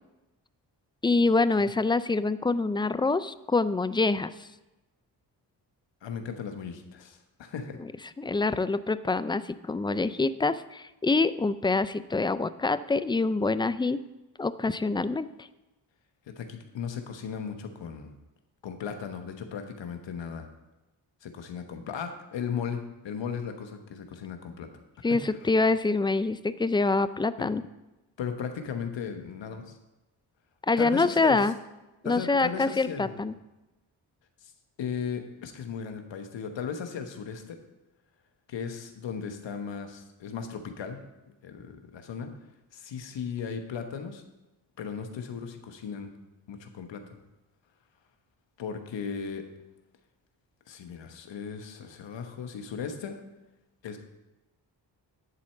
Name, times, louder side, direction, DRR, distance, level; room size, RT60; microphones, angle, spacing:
voice 1, 1.0-4.5 8.2-14.0 14.4-15.3 25.0-27.6 30.7-31.5 32.0-33.3, left 3 dB, 10° left, 14 dB, 0.3 m, -25 dB
voice 2, 6.0-7.8 16.3-18.1 18.6-20.5 21.2-24.7 27.4-27.5 28.2-29.8 30.8-31.5 32.0-33.2 34.4-34.5 34.8-37.6 38.5-41.0 41.4-42.3 42.7-44.2 44.8-46.1 46.5-47.2 48.6-49.4 50.7-53.2 53.8-54.0, left 6 dB, 75° left, 6 dB, 1.2 m, -36 dB
11.0 x 4.3 x 6.5 m, 1.0 s
cardioid pair, 55°, 44 cm